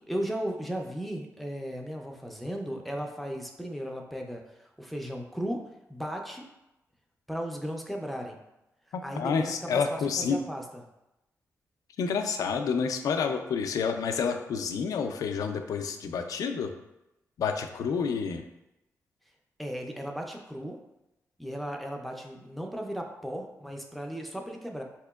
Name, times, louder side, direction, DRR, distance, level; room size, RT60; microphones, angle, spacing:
voice 1, 0.1-5.6 5.9-6.5 7.3-8.4 9.0-10.8 19.6-20.8 21.4-24.8, equal, ahead, 1 dB, 0.4 m, -36 dB
voice 2, 8.9-10.4 12.0-16.7 17.4-18.4, left 6 dB, 85° left, 6 dB, 0.3 m, -29 dB
4.2 x 2.9 x 2.3 m, 0.92 s
wide cardioid pair, 125°, 6 cm